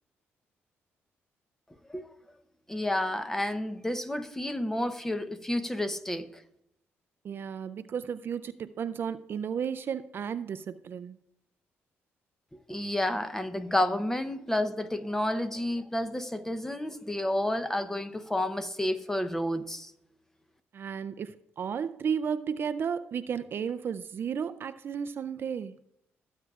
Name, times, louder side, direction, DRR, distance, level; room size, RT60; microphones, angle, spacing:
voice 1, 2.7-6.3 12.7-19.9, left 1 dB, 10° left, 0.8 m, -30 dB
voice 2, 7.2-11.2 20.7-25.8, right 7 dB, 50° right, 0.4 m, -33 dB
17.0 x 8.2 x 2.4 m
cardioid pair, 100°, 5 cm